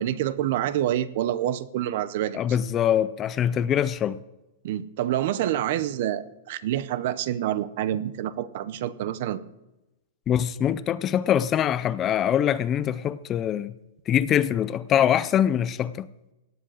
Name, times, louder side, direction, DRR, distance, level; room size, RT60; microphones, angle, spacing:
voice 1, 0.0-2.4 4.6-9.5, right 12 dB, 50° right, 0.7 m, -27 dB
voice 2, 2.3-4.2 10.3-13.7 14.1-16.1, left 10 dB, 20° left, 0.4 m, -23 dB
17.5 x 7.9 x 6.3 m
supercardioid pair, 170°, 0 cm